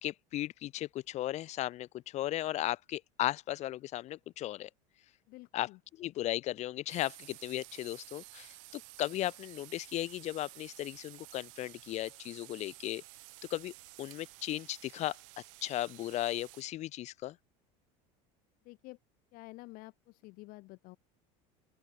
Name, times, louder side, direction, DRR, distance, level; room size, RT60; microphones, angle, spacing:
voice 1, 0.0-4.7 5.5-13.0 13.5-13.7 14.0-15.2 15.6-17.4, left 14 dB, 45° left, 0.8 m, -36 dB
voice 2, 5.3-5.8 18.6-19.0 19.3-21.0, left 22 dB, 60° left, 2.5 m, -50 dB
sound 1, 6.9-16.6, right 28 dB, 75° right, 1.3 m, -53 dB
open air
supercardioid pair, 125°, 17 cm